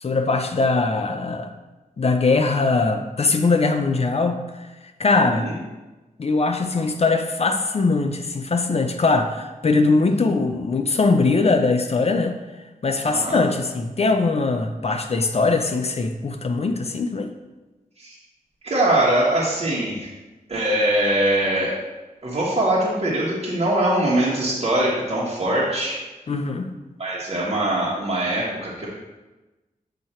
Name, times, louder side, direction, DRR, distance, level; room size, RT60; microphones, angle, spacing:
voice 1, 0.0-1.5 2.0-4.7 5.0-5.5 6.2-12.4 12.8-17.3 26.3-26.7, left 3 dB, 45° left, 6 dB, 0.6 m, -21 dB
voice 2, 5.2-5.6 13.1-13.4 18.0-18.2 18.6-20.1 20.5-21.7 22.2-26.0 27.0-28.9, right 1 dB, 45° right, -7 dB, 1.4 m, -22 dB
7.9 x 2.8 x 4.4 m, 1.1 s
cardioid pair, 65°, 15 cm